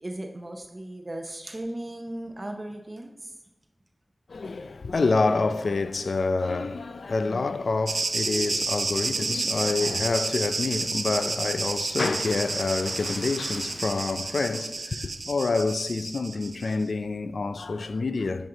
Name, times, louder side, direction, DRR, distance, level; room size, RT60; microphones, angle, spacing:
voice 1, 0.0-3.3, right 1 dB, 35° right, 0.6 m, -37 dB
voice 2, 4.3-18.5, left 3 dB, 90° left, 0.4 m, -27 dB
sound 1, 7.9-16.7, right 3 dB, 80° right, 0.5 m, -30 dB
10.5 x 5.2 x 3.8 m
wide cardioid pair, 65°, 0 cm